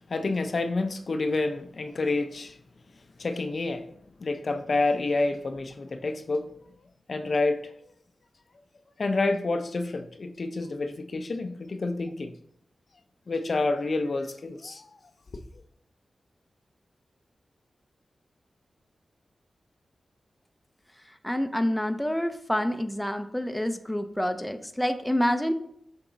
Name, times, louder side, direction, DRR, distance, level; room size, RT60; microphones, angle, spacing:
voice 1, 0.1-2.6 3.2-3.9 4.2-6.5 7.1-7.7 9.0-12.3 13.3-15.0, left 3 dB, 60° left, 0.6 m, -28 dB
voice 2, 21.2-25.5, equal, 5° left, 0.6 m, -27 dB
6.9 x 3.6 x 4.0 m
cardioid pair, 50°, 0 cm